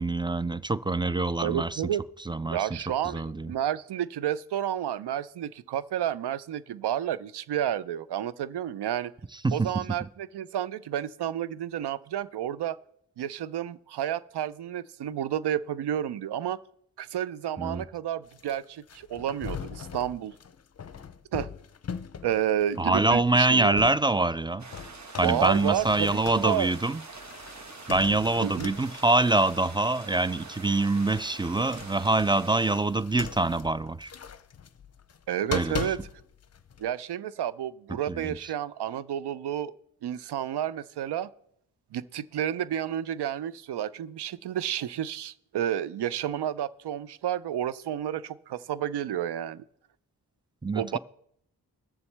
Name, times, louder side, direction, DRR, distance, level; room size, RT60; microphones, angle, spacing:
voice 1, 0.0-1.8 2.3-2.7 3.1-3.5 9.4-9.7 17.6-17.8 22.8-24.7 25.2-27.0 27.9-34.1 35.5-35.9 38.1-38.4 50.6-51.0, right 2 dB, 10° right, 0.4 m, -25 dB
voice 2, 1.4-2.0 2.5-9.1 9.5-12.8 13.2-16.6 17.0-20.3 21.3-21.5 22.2-23.8 25.2-26.7 28.4-28.7 35.3-36.0 36.8-39.7 40.0-41.3 41.9-49.6 50.7-51.0, right 10 dB, 80° right, 0.6 m, -31 dB
sound 1, 18.3-24.4 24.7-36.9, left 7 dB, 40° left, 0.6 m, -41 dB
sound 2, 24.6-32.8, right 3 dB, 45° right, 1.3 m, -45 dB
20.0 x 6.9 x 3.4 m
cardioid pair, 40°, 40 cm